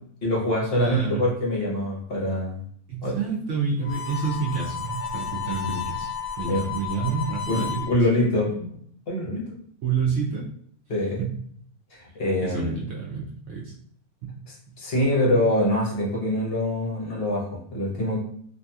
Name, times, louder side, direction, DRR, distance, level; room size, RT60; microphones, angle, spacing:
voice 1, 0.2-2.6 3.0-3.2 6.5-6.6 7.5-8.5 9.1-9.5 10.9-11.2 11.9-12.7 14.8-18.2, left 1 dB, 50° left, -3 dB, 0.9 m, -24 dB
voice 2, 0.8-1.2 2.9-6.1 6.4-8.0 8.4-8.7 9.8-10.5 11.2-11.3 12.4-13.7 14.2-14.3, right 5 dB, 65° right, -4 dB, 0.7 m, -28 dB
Harmonica, 3.8-7.9, left 7 dB, 75° left, 1.0 m, -32 dB
2.7 x 2.6 x 2.3 m, 0.63 s
omnidirectional pair, 1.6 m